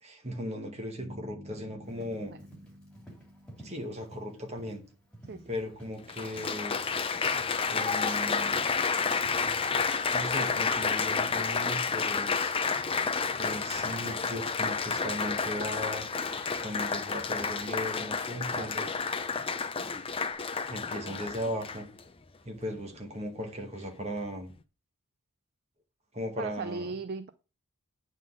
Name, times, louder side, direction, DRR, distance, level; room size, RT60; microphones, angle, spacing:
voice 1, 0.0-2.3 3.6-4.8 5.5-6.8 7.7-8.7 10.1-12.5 13.4-16.1 16.6-18.9 20.6-21.9 22.4-24.5 26.1-26.9, equal, 30° right, 1.8 m, -37 dB
sound 1, 1.0-5.0, equal, 80° right, 1.6 m, -50 dB
Livestock farm animals working animals, 1.8-20.3, right 1 dB, 5° left, 2.8 m, -57 dB
Applause, 5.3-5.4 6.1-22.0 22.7-23.1, left 5 dB, 25° left, 0.6 m, -30 dB
voice 2, 18.5-19.0 26.4-27.3, right 4 dB, 45° right, 0.4 m, -38 dB
9.1 x 4.1 x 7.3 m
head